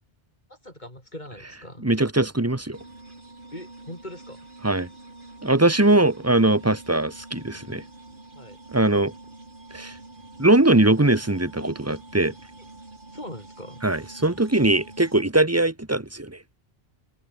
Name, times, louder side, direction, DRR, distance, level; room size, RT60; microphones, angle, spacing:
voice 1, 0.5-1.9 3.5-4.5 8.3-8.6 12.6-12.7 13.1-13.8, left 1 dB, 45° left, 7.9 m, -41 dB
voice 2, 1.8-2.8 4.6-4.9 5.4-7.8 8.7-9.1 9.7-9.9 10.4-12.3 13.8-16.4, right 2 dB, 15° right, 1.3 m, -21 dB
sound 1, 2.7-15.2, right 2 dB, 55° right, 3.5 m, -46 dB
omnidirectional pair, 1.0 m